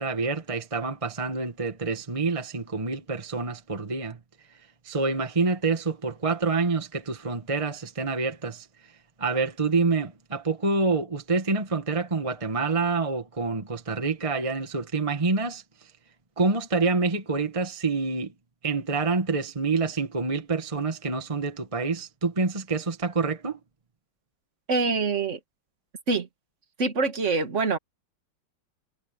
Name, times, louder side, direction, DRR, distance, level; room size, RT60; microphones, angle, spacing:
voice 1, 0.0-4.2 4.8-8.7 9.2-15.6 16.4-18.3 18.6-23.6, right 3 dB, 20° right, 1.5 m, -27 dB
voice 2, 24.7-25.4 26.1-26.3 26.8-27.8, right 4 dB, 40° right, 2.2 m, -25 dB
omnidirectional pair, 2.1 m